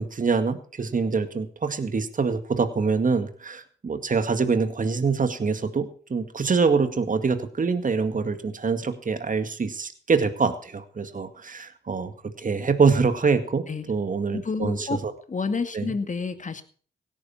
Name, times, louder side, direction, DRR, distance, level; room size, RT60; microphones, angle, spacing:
voice 1, 0.0-12.1 12.4-15.1 15.7-15.9, right 5 dB, 40° right, 9 dB, 2.0 m, -25 dB
voice 2, 14.3-15.0 15.3-16.6, left 4 dB, 40° left, 9 dB, 2.2 m, -29 dB
17.0 x 9.7 x 5.7 m, 0.43 s
hypercardioid pair, 40°, 20 cm